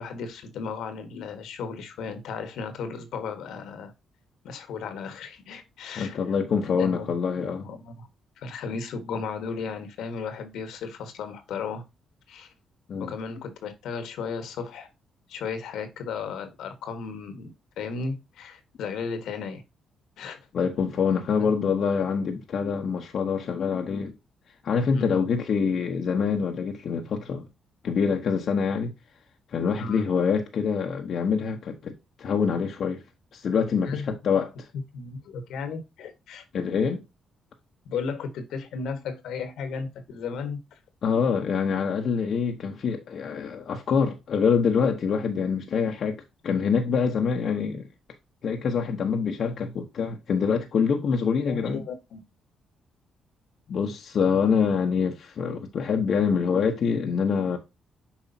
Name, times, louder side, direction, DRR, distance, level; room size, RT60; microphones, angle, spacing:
voice 1, 0.0-3.9 4.4-6.2 6.7-7.2 7.6-8.1 8.4-11.8 12.3-12.5 13.0-14.9 15.3-17.5 17.8-19.6 20.2-20.4 21.4-21.5 24.9-25.3 29.8-30.1 33.8-34.1 34.7-36.4 37.8-40.8 51.4-52.2, left 5 dB, 80° left, 1.4 m, -35 dB
voice 2, 6.0-7.7 12.9-13.1 20.5-24.1 24.6-27.4 27.8-28.9 29.5-31.9 32.2-33.0 33.3-34.5 36.5-37.0 41.0-46.2 46.4-47.9 48.4-51.8 53.7-57.6, left 6 dB, 60° left, 1.0 m, -25 dB
7.2 x 4.8 x 2.7 m
cardioid pair, 75°, 0 cm